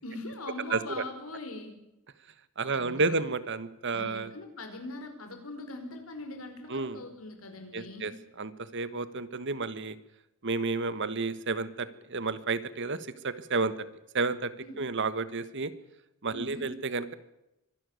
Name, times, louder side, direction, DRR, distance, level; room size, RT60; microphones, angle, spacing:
voice 1, 0.0-1.8 2.7-3.2 3.9-8.1 14.6-14.8 16.3-16.8, left 2 dB, 75° left, 6 dB, 4.8 m, -41 dB
voice 2, 0.7-1.0 2.6-4.3 6.7-7.0 7.7-8.1 8.4-10.0 10.4-13.9 14.1-14.5 14.8-15.7 16.2-17.1, right 3 dB, 60° right, 14 dB, 1.4 m, -31 dB
24.5 x 12.0 x 9.5 m, 0.89 s
head